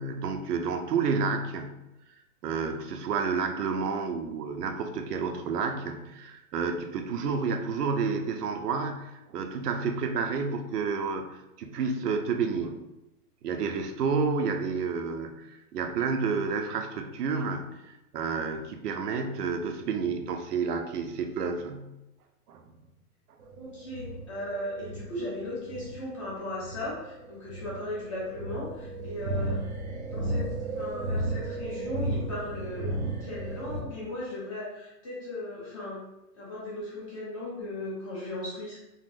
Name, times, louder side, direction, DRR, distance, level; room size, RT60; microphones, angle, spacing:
voice 1, 0.0-1.8 2.4-12.8 13.4-21.9 22.5-22.7, right 5 dB, 85° right, 6 dB, 0.6 m, -30 dB
sound 1, 23.4-33.8, right 2 dB, 50° right, 0.6 m, -34 dB
voice 2, 23.6-29.6 30.1-30.5 30.7-36.0 36.4-38.8, left 1 dB, 20° left, -7 dB, 0.6 m, -37 dB
3.7 x 2.0 x 2.5 m, 0.94 s
hypercardioid pair, 165°, 45 cm